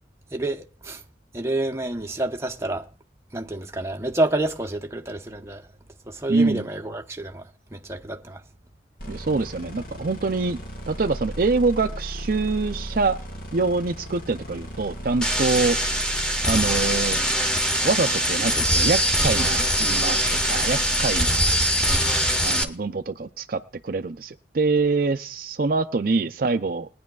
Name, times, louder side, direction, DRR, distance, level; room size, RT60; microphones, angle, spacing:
voice 1, 0.3-1.0 1.3-2.9 3.3-5.6 6.1-8.4, right 2 dB, 15° right, 0.9 m, -28 dB
voice 2, 6.3-6.6 9.1-10.6 10.9-13.2 13.5-15.8 16.5-17.2 17.8-21.6 22.4-26.9, right 3 dB, 50° right, 0.5 m, -25 dB
sound 1, 9.0-22.5, equal, 50° left, 1.8 m, -36 dB
sound 2, 15.2-22.6, equal, 5° left, 1.2 m, -22 dB
20.5 x 10.5 x 2.4 m
head